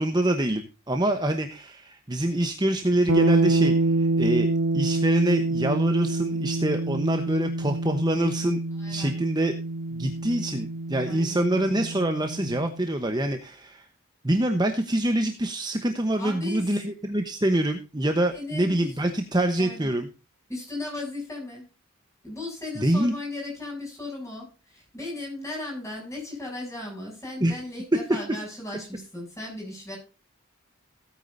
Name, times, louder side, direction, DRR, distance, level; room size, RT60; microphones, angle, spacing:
voice 1, 0.0-4.5 4.7-8.6 8.9-9.5 9.9-13.9 14.2-20.1 22.7-23.1 27.4-27.6, right 1 dB, 20° right, 6 dB, 0.9 m, -25 dB
sound 1, 3.1-12.9, right 2 dB, 85° right, 1.3 m, -27 dB
voice 2, 8.8-9.1 11.1-11.4 16.1-16.7 18.3-19.0 19.5-19.9 20.5-21.6 22.2-30.0, left 2 dB, 15° left, -1 dB, 7.3 m, -36 dB
16.5 x 9.3 x 2.6 m, 0.32 s
head